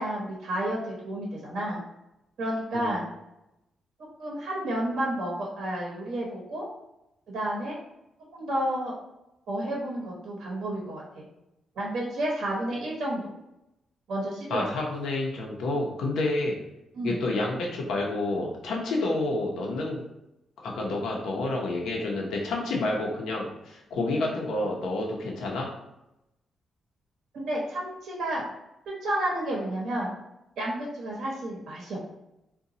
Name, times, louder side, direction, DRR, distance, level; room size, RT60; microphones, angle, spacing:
voice 1, 0.0-1.8 2.4-3.0 4.2-6.7 7.3-7.8 8.3-8.9 9.5-11.3 11.8-13.2 14.1-14.6 16.9-17.2 27.3-28.4 28.9-30.1 30.6-32.1, right 1 dB, 65° right, -3 dB, 0.8 m, -31 dB
voice 2, 14.5-16.6 17.0-20.0 20.6-25.7, left 2 dB, 80° left, -1 dB, 0.7 m, -29 dB
3.9 x 2.2 x 2.7 m, 0.90 s
cardioid pair, 145°, 0 cm